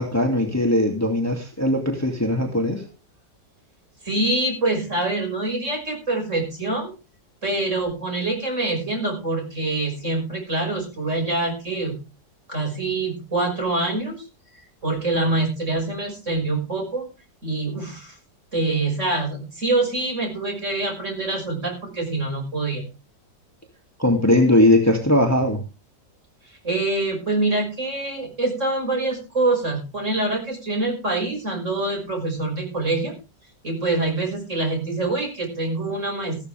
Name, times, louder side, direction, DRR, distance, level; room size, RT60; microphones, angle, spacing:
voice 1, 0.0-2.8 24.0-25.6, left 1 dB, 10° left, 2 dB, 2.4 m, -19 dB
voice 2, 4.0-6.9 7.4-12.0 12.5-14.2 14.8-17.1 17.4-18.2 18.5-22.8 26.6-33.2 33.6-36.5, right 2 dB, 40° right, 3 dB, 6.3 m, -25 dB
15.0 x 13.5 x 3.5 m, 0.30 s
omnidirectional pair, 1.9 m